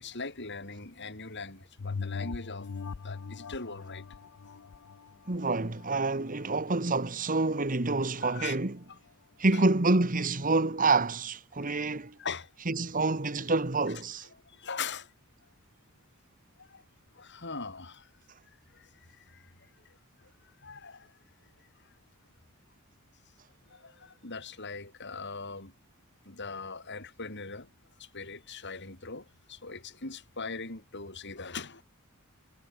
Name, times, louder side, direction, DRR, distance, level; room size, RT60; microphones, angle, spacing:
voice 1, 0.0-2.7 3.0-4.1 4.4-4.6 8.2-8.6 8.9-9.0 9.5-9.7 11.6-11.7 12.2-12.5 14.3-15.1 16.6-16.8 17.1-18.1 18.7-21.2 21.6-21.9 23.7-25.7 26.2-27.7 28.0-31.8, left 4 dB, 50° left, 5.5 m, -41 dB
sound 1, 1.8-6.7 7.2-7.3, left 5 dB, 70° left, 0.5 m, -40 dB
voice 2, 5.3-8.8 9.4-12.2 12.7-14.3, right 3 dB, 40° right, 1.5 m, -27 dB
head